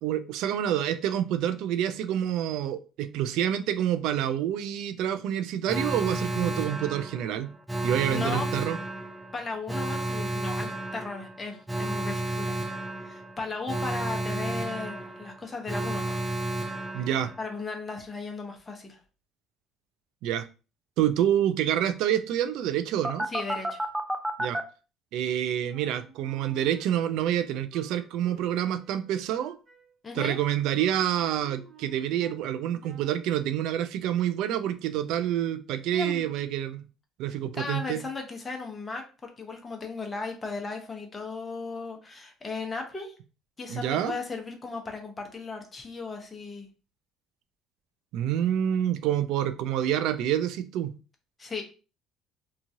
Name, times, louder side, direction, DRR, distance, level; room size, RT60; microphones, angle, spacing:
voice 1, 0.0-7.5 7.8-8.8 16.9-17.3 20.2-20.5 21.0-23.3 24.4-24.6 25.1-29.6 30.1-36.9 37.2-38.0 43.7-44.2 48.1-50.9, right 11 dB, 75° right, 11 dB, 0.3 m, -27 dB
Alarm, 5.7-17.6 23.0-24.6, right 1 dB, 5° right, 0.4 m, -32 dB
voice 2, 8.1-8.5 9.3-12.6 13.0-16.2 17.4-19.0 23.3-23.8 30.0-30.4 35.9-36.3 37.5-43.1 43.6-46.7 51.4-51.6, left 3 dB, 25° left, 2 dB, 0.7 m, -36 dB
Wind instrument woodwind instrument, 25.7-32.5 32.8-33.3, equal, 25° right, 0.9 m, -53 dB
3.0 x 2.3 x 2.7 m, 0.34 s
supercardioid pair, 95°, 0 cm